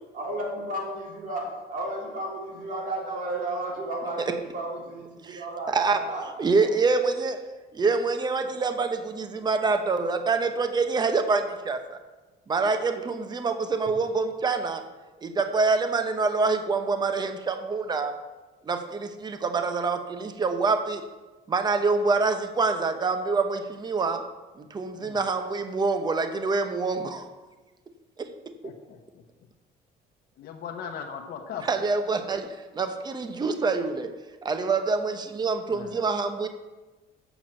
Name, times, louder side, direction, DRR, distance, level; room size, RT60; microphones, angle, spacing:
voice 1, 0.1-6.3 12.7-12.8, right 1 dB, 55° right, -2 dB, 3.2 m, -33 dB
voice 2, 5.2-6.0 6.4-7.4 7.8-8.9 9.2-12.0 12.5-14.9 15.2-18.2 18.6-21.1 21.5-24.3 24.6-27.3 28.2-28.3 31.7-34.2 34.4-36.5, right 4 dB, 25° right, 8 dB, 0.8 m, -26 dB
voice 3, 28.6-29.2 30.4-31.7 35.7-36.0, left 7 dB, 65° left, 2 dB, 0.9 m, -39 dB
7.1 x 5.9 x 7.6 m, 1.2 s
cardioid pair, 110°, 17 cm